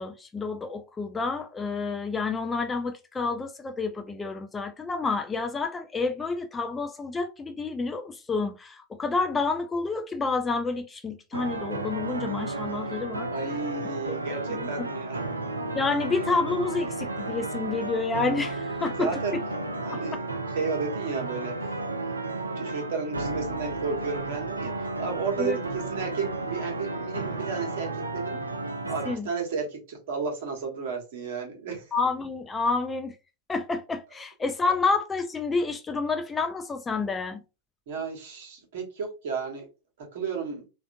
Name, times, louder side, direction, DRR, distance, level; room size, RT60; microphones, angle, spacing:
voice 1, 0.0-13.3 14.1-14.2 14.5-14.9 15.7-19.4 19.9-20.0 25.4-25.6 29.0-29.3 31.9-33.2 33.5-37.4, left 4 dB, 15° left, 0.4 m, -29 dB
sound 1, 11.3-29.2, right 2 dB, 80° right, 0.4 m, -33 dB
voice 2, 13.3-15.2 19.0-19.3 19.8-20.1 20.5-21.5 22.5-28.4 28.9-31.8 37.9-39.7 40.0-40.6, right 5 dB, 55° right, 1.2 m, -33 dB
3.4 x 2.4 x 2.5 m
figure-of-eight pair, 90°, 0 cm